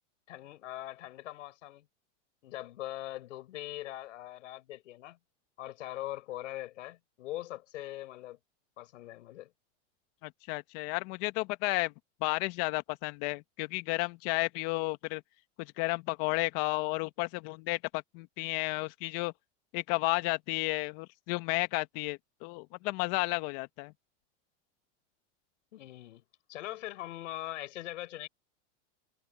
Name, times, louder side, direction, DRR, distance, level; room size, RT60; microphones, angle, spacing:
voice 1, 0.3-1.9 2.4-5.2 5.6-8.4 8.8-9.5 25.7-26.2 26.5-28.3, left 15 dB, 80° left, 5.0 m, -41 dB
voice 2, 10.2-11.9 12.2-15.2 15.6-19.3 19.7-23.9, left 25 dB, 50° left, 1.6 m, -32 dB
supercardioid pair, 130°, 36 cm